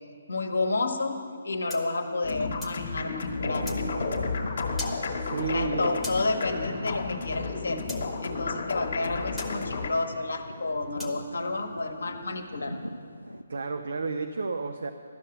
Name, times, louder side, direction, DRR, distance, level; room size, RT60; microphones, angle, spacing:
voice 1, 0.3-1.2 1.4-3.7 5.5-7.8 8.2-12.7, left 3 dB, 60° left, 5 dB, 1.1 m, -30 dB
sound 1, 1.7-2.8 3.7-3.8 4.8-5.0 6.0-6.2 7.9-8.0 9.4-9.5 11.0-11.2, left 1 dB, ahead, 1.1 m, -39 dB
sound 2, 2.2-9.9, left 4 dB, 45° left, 1.4 m, -32 dB
sound 3, 3.4-13.4, left 1 dB, 85° left, 0.4 m, -40 dB
voice 2, 5.2-6.0 13.5-14.9, right 4 dB, 55° right, 7 dB, 0.5 m, -31 dB
12.0 x 6.5 x 9.3 m, 2.2 s
figure-of-eight pair, 140°, 0 cm